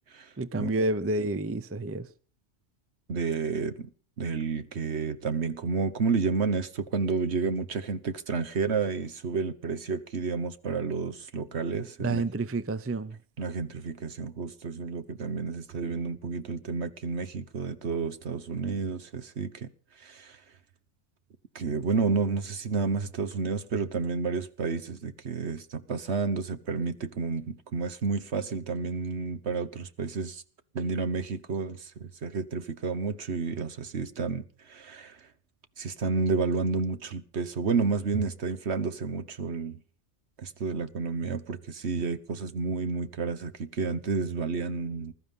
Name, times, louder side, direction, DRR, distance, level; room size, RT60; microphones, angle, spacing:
voice 1, 0.4-2.1 12.0-13.2, right 2 dB, 15° right, 0.5 m, -29 dB
voice 2, 3.1-3.9 4.2-12.2 13.4-19.7 20.0-20.4 21.5-30.4 30.7-35.2 35.8-39.8 40.4-45.1, right 4 dB, 65° right, 1.4 m, -30 dB
21.0 x 12.5 x 5.4 m
omnidirectional pair, 1.2 m